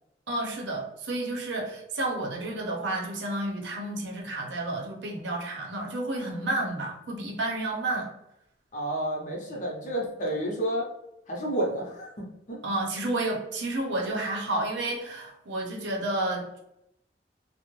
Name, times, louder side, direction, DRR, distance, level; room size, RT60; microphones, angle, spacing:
voice 1, 0.3-8.1 12.6-16.6, right 2 dB, 75° right, -1 dB, 0.6 m, -31 dB
voice 2, 8.7-10.8 11.3-12.6, right 1 dB, 45° left, -2 dB, 0.7 m, -30 dB
2.4 x 2.1 x 3.0 m, 0.81 s
head